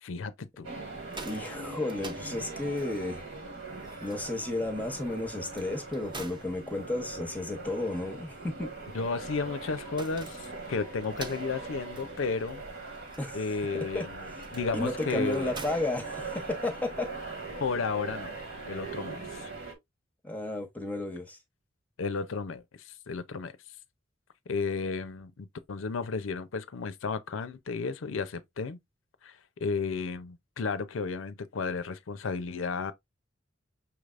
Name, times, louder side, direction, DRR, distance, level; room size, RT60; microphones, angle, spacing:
voice 1, 0.0-0.7 8.9-12.6 13.3-15.5 17.6-18.3 18.7-19.5 22.0-23.5 24.5-28.8 29.2-32.9, left 4 dB, 75° left, 0.5 m, -33 dB
sound 1, 0.6-19.7, right 3 dB, 70° right, 1.6 m, -41 dB
sound 2, 0.9-16.8, right 3 dB, 25° right, 0.7 m, -50 dB
voice 2, 1.2-3.2 4.0-8.7 13.2-13.4 13.8-14.1 14.7-17.1 20.2-21.4, left 2 dB, 10° left, 0.8 m, -33 dB
5.8 x 3.3 x 2.4 m
head